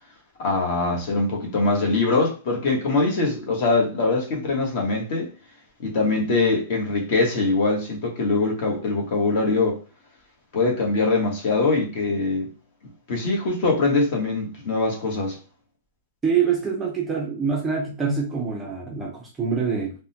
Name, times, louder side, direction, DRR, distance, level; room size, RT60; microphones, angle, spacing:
voice 1, 0.4-5.3 5.8-9.8 10.5-12.5 13.1-15.4, left 3 dB, 40° left, 1.1 m, -22 dB
voice 2, 16.2-19.9, right 6 dB, 10° right, 0.5 m, -25 dB
3.6 x 2.1 x 2.7 m
supercardioid pair, 175°, 0 cm